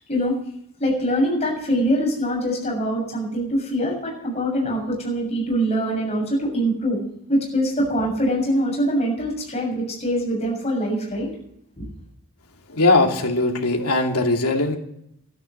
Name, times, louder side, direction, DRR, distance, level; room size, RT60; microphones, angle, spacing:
voice 1, 0.8-7.0 7.3-11.3 11.8-11.9, equal, 30° left, -2 dB, 7.2 m, -23 dB
voice 2, 12.7-14.8, left 2 dB, 90° left, 2 dB, 2.6 m, -20 dB
13.0 x 11.5 x 7.7 m, 0.73 s
head